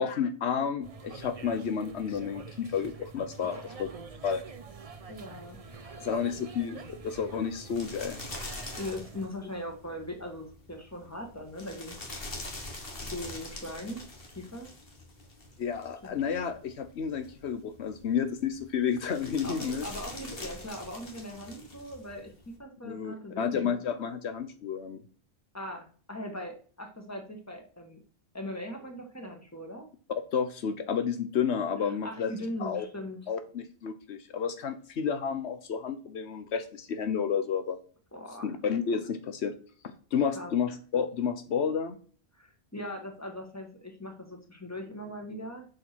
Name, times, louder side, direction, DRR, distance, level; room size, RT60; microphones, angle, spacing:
voice 1, 0.0-3.9 4.2-4.4 6.0-8.2 15.6-19.9 22.8-25.0 30.3-32.3 32.6-32.8 33.3-37.8 38.4-39.5 40.1-42.0, left 7 dB, 80° left, 9 dB, 1.1 m, -31 dB
sound 1, 0.8-9.3, right 4 dB, 35° right, 0.8 m, -46 dB
voice 2, 5.1-6.1 8.7-12.0 13.1-14.0 14.3-14.7 16.0-16.2 19.4-23.7 25.5-28.0 28.3-29.9 31.8-33.2 38.1-38.5 40.4-40.5 42.3-45.7, left 1 dB, 15° left, 3 dB, 2.0 m, -40 dB
sound 2, 5.6-22.6, left 2 dB, 60° left, 2.1 m, -45 dB
7.8 x 6.5 x 6.2 m, 0.43 s
omnidirectional pair, 1.1 m